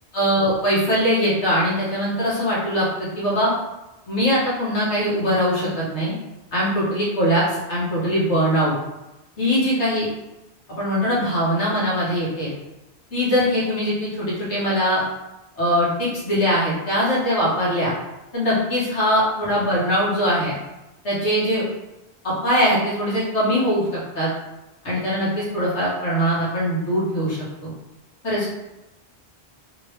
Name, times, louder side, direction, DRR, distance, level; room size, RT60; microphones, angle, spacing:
voice 1, 0.1-3.5 4.1-6.1 6.5-8.7 9.4-10.1 10.7-12.5 13.1-15.0 15.6-17.9 18.3-20.5 21.0-21.6 22.2-23.8 24.1-24.3 24.8-27.7 28.2-28.4, equal, 90° left, -7 dB, 1.7 m, -21 dB
3.3 x 3.1 x 3.2 m, 0.99 s
omnidirectional pair, 1.1 m